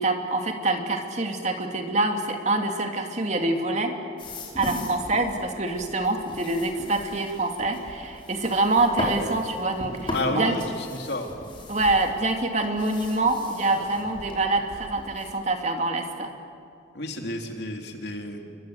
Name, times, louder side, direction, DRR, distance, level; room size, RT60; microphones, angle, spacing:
voice 1, 0.0-3.9 4.6-10.6 11.7-16.3, right 2 dB, 40° right, 4 dB, 2.6 m, -25 dB
sound 1, 4.2-15.3, left 1 dB, 25° left, 4.8 m, -37 dB
voice 2, 10.1-10.6 10.9-11.3 16.9-18.5, left 1 dB, 60° left, 3 dB, 3.0 m, -30 dB
29.0 x 24.0 x 8.0 m, 2.4 s
head